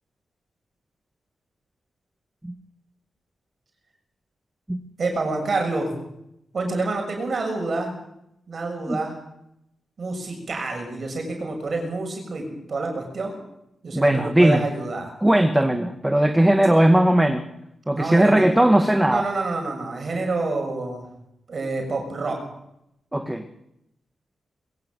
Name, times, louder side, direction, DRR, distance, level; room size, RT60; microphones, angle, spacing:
voice 1, 5.0-6.0 6.5-7.9 8.5-9.2 10.0-13.4 13.8-15.1 17.9-18.5 19.1-21.1 21.5-22.4, right 3 dB, 55° right, 3 dB, 6.6 m, -27 dB
voice 2, 13.9-14.6 15.2-17.4 17.9-19.2 23.1-23.5, right 1 dB, 10° right, 7 dB, 2.0 m, -18 dB
22.0 x 16.5 x 7.8 m, 0.81 s
cardioid pair, 65°, 0 cm